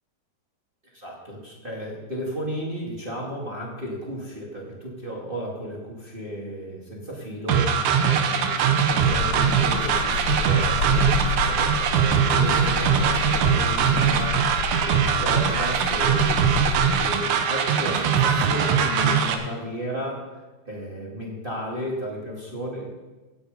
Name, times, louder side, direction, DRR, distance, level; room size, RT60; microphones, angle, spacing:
voice 1, 0.9-7.6 8.0-14.4 14.9-20.2 20.6-22.9, equal, 25° right, -4 dB, 1.3 m, -34 dB
sound 1, 7.5-19.3, right 7 dB, 70° right, 2.0 m, -21 dB
sound 2, 8.9-17.2, left 4 dB, 60° left, 2.6 m, -30 dB
16.5 x 7.8 x 5.2 m, 1.2 s
omnidirectional pair, 4.5 m